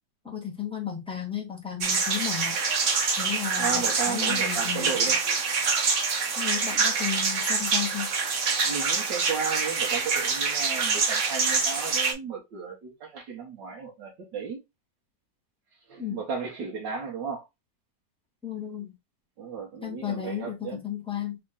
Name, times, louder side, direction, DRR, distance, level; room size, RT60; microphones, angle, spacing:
voice 1, 0.2-2.6 3.2-5.0 6.4-8.1 16.0-16.2 18.4-18.9 19.8-21.4, left 9 dB, 5° left, 1.0 m, -34 dB
sound 1, 1.8-12.1, right 4 dB, 50° right, 1.1 m, -26 dB
voice 2, 3.6-5.4 8.6-14.6 15.9-17.5 19.4-20.8, right 6 dB, 80° right, 1.6 m, -34 dB
4.2 x 2.9 x 3.6 m
omnidirectional pair, 1.9 m